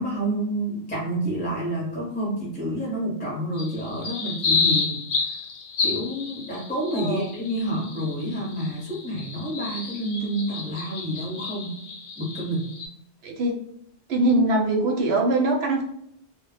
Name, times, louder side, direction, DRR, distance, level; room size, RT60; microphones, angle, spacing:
voice 1, 0.0-5.3 5.8-11.8 12.2-12.7, right 1 dB, 10° left, -4 dB, 0.7 m, -29 dB
sound 1, 3.6-12.9, left 4 dB, 75° left, 0.8 m, -30 dB
voice 2, 6.9-7.2 13.2-13.6 14.1-15.8, right 2 dB, 70° right, 1 dB, 0.8 m, -22 dB
2.1 x 2.0 x 3.1 m, 0.72 s
omnidirectional pair, 1.2 m